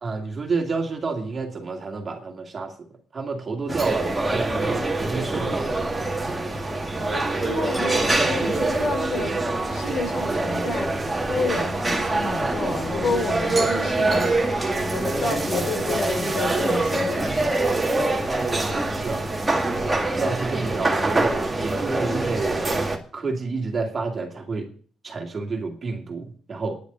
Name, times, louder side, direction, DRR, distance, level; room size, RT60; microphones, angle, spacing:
voice 1, 0.0-2.9 3.1-6.1 18.6-19.3 20.2-24.7 25.0-26.8, right 4 dB, 30° right, 2 dB, 2.5 m, -29 dB
sound 1, 3.7-23.0, right 2 dB, 10° right, 2.0 m, -24 dB
voice 2, 7.4-9.4 9.7-11.0 11.3-14.4 14.8-17.6, left 3 dB, 65° left, 3 dB, 4.5 m, -30 dB
10.5 x 7.0 x 9.0 m, 0.43 s
cardioid pair, 135°, 0 cm